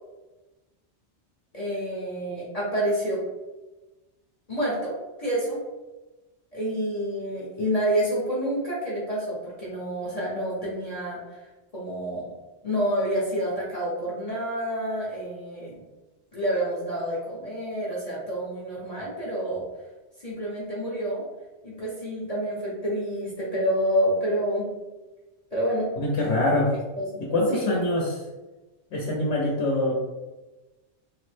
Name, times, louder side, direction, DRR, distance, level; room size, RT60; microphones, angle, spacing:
voice 1, 1.5-3.2 4.5-4.9 5.2-5.6 6.5-11.2 11.7-12.3 12.6-15.7 16.3-19.6 20.2-21.2 21.6-24.7 25.5-25.9 27.0-27.1 27.5-27.8, equal, 40° left, -7 dB, 0.7 m, -28 dB
voice 2, 26.0-26.7 27.3-28.2 28.9-29.9, left 2 dB, 75° left, -3 dB, 0.9 m, -24 dB
3.2 x 2.0 x 3.2 m, 1.1 s
omnidirectional pair, 1.2 m